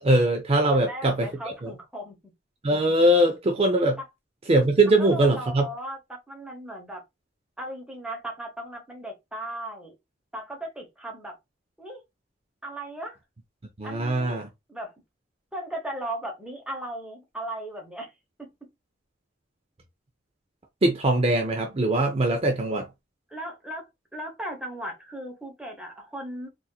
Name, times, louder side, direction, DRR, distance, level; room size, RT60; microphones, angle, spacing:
voice 1, 0.0-1.7 2.6-4.0 4.5-5.7 13.8-14.5 20.8-22.9, right 1 dB, 35° right, 0.5 m, -22 dB
voice 2, 0.7-2.2 5.0-7.0 7.6-9.9 10.3-11.3 11.8-12.0 12.6-13.2 13.8-14.4 14.7-14.9 15.5-18.1 18.4-18.5 23.3-23.9 24.1-26.5, right 1 dB, 5° right, 1.0 m, -36 dB
4.1 x 2.5 x 2.3 m
head